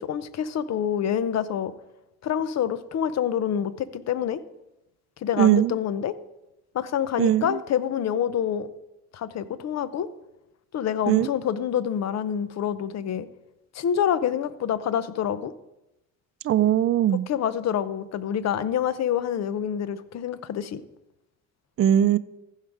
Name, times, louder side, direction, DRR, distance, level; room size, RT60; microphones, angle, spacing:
voice 1, 0.0-1.7 2.2-4.4 5.2-6.1 6.7-8.7 9.1-10.1 10.7-13.3 13.7-15.5 17.3-20.8, left 9 dB, 60° left, 14 dB, 0.7 m, -27 dB
voice 2, 5.4-5.7 7.2-7.6 11.1-11.3 16.4-17.3 21.8-22.2, right 11 dB, 45° right, 13 dB, 0.5 m, -20 dB
15.0 x 5.7 x 4.8 m, 0.92 s
cardioid pair, 90°, 30 cm